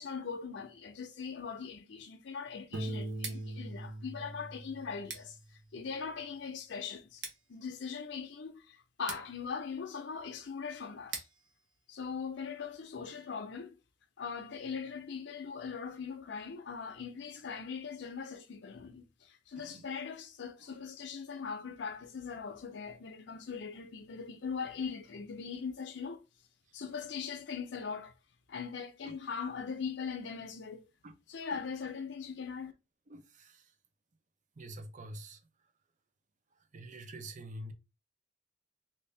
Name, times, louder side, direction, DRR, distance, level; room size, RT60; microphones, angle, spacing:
voice 1, 0.0-5.4 5.7-7.2 7.5-11.3 11.9-13.7 14.2-26.2 26.7-28.1 28.5-30.9 31.3-32.7, left 6 dB, 65° left, 0.5 m, -40 dB
Piano, 2.7-5.5, right 1 dB, 90° right, 0.9 m, -41 dB
Scissors, 3.1-12.9, right 5 dB, 65° right, 1.0 m, -50 dB
voice 2, 33.1-33.6 34.6-35.4 36.7-37.7, right 1 dB, 40° right, 0.6 m, -46 dB
3.2 x 2.7 x 3.3 m
head